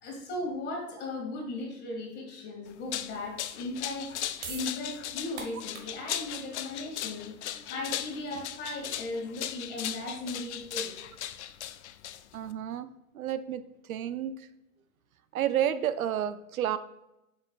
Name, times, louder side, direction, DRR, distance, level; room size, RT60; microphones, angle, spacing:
voice 1, 0.0-4.1 4.5-11.0, left 2 dB, 25° left, 0 dB, 2.0 m, -37 dB
sound 1, 2.7-12.5, left 12 dB, 55° left, 0.4 m, -37 dB
sound 2, 4.4-10.7, right 5 dB, 45° right, 1.3 m, -48 dB
voice 2, 12.3-12.9 13.1-14.5 15.3-16.8, right 10 dB, 75° right, 13 dB, 0.6 m, -31 dB
7.1 x 5.6 x 2.4 m, 0.88 s
hypercardioid pair, 130°, 43 cm